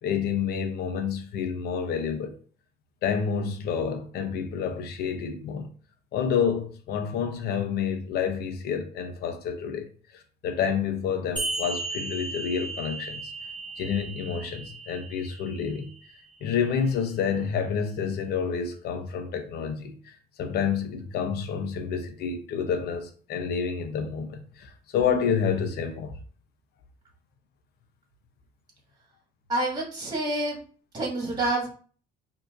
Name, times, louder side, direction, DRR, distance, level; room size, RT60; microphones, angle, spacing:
voice 1, 0.0-2.4 3.0-5.7 6.1-9.9 10.1-13.3 13.8-15.9 16.4-26.2, left 7 dB, 70° left, 0.8 m, -29 dB
sound 1, 11.4-16.4, right 3 dB, 5° left, 1.5 m, -36 dB
voice 2, 29.5-30.6 30.9-31.7, right 2 dB, 25° right, 2.0 m, -27 dB
4.9 x 2.8 x 2.5 m
cardioid pair, 110°, 17 cm